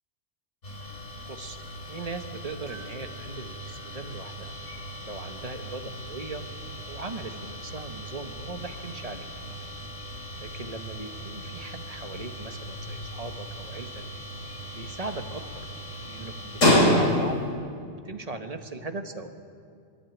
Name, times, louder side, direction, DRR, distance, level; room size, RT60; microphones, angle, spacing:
sound 1, 0.6-17.5, left 1 dB, 90° left, 4.1 m, -31 dB
voice 1, 1.3-1.6 1.9-4.5 5.0-6.4 6.9-9.3 10.4-14.0 14.7-15.6 16.0-17.4 17.9-19.3, right 3 dB, 35° right, 6 dB, 1.2 m, -38 dB
26.0 x 11.5 x 9.1 m, 2.3 s
omnidirectional pair, 1.2 m